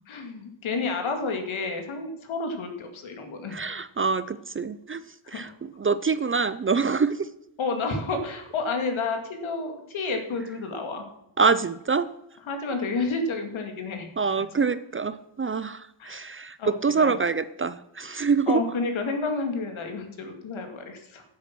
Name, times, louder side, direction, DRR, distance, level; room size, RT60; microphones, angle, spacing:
voice 1, 0.1-3.6 5.2-5.5 7.6-11.1 12.5-14.1 14.5-14.6 16.0-16.2 16.6-17.1 18.5-21.2, left 3 dB, 75° left, 5 dB, 2.6 m, -30 dB
voice 2, 3.5-5.0 5.3-5.5 5.8-7.3 11.4-12.1 14.2-18.6, right 5 dB, 30° right, 15 dB, 0.5 m, -25 dB
15.5 x 8.4 x 6.2 m, 0.83 s
cardioid pair, 120°, 48 cm